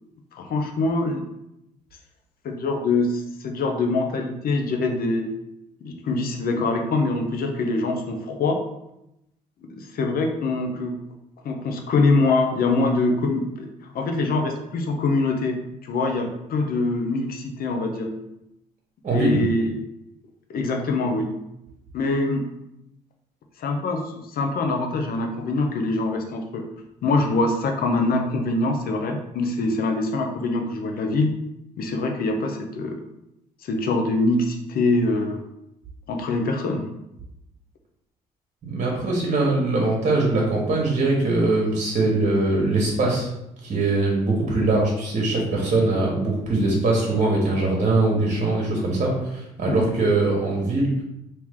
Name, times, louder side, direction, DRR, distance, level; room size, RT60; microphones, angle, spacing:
voice 1, 0.3-1.3 2.4-5.3 5.8-8.6 9.7-11.0 11.4-13.7 13.9-18.1 19.1-19.8 20.5-21.3 21.9-22.5 23.6-26.7 27.0-31.3 31.8-33.0 33.6-35.4 36.1-36.9 49.7-49.9, left 3 dB, 60° left, 3 dB, 0.7 m, -24 dB
voice 2, 19.0-19.4 38.6-43.3 43.6-50.9, right 2 dB, 45° right, -2 dB, 1.2 m, -22 dB
3.1 x 2.9 x 3.7 m, 0.85 s
supercardioid pair, 60°, 17 cm